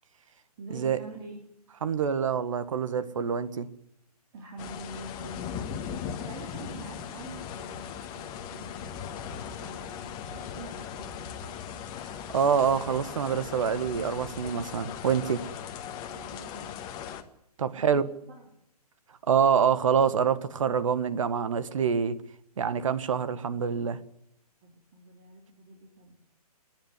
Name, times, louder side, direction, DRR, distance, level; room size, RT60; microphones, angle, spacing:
voice 1, 0.6-1.4 4.3-5.5 5.9-11.6 16.1-16.9 17.7-18.4 24.6-26.2, right 2 dB, 40° right, 4.3 m, -46 dB
voice 2, 1.8-3.7 12.3-15.4 17.6-18.0 19.3-22.2 22.6-24.0, right 7 dB, 55° right, 1.6 m, -26 dB
sound 1, 4.6-17.2, left 8 dB, 20° left, 1.5 m, -38 dB
29.0 x 10.5 x 9.8 m
figure-of-eight pair, 130°, 20 cm